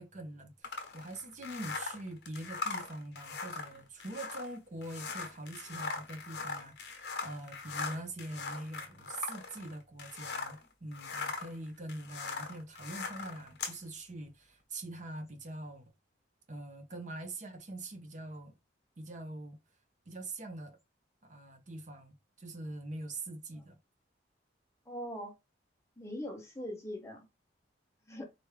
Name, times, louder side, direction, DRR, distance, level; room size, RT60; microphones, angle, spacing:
voice 1, 0.0-15.8 16.5-18.6 19.0-19.6 20.1-20.8 21.2-23.8, right 1 dB, 40° right, 0.8 m, -44 dB
sound 1, 0.6-10.6 10.9-13.8, left 4 dB, 60° left, 1.0 m, -40 dB
voice 2, 24.9-25.3 26.0-27.3 28.1-28.2, equal, 15° left, 0.9 m, -41 dB
4.5 x 2.6 x 3.2 m
head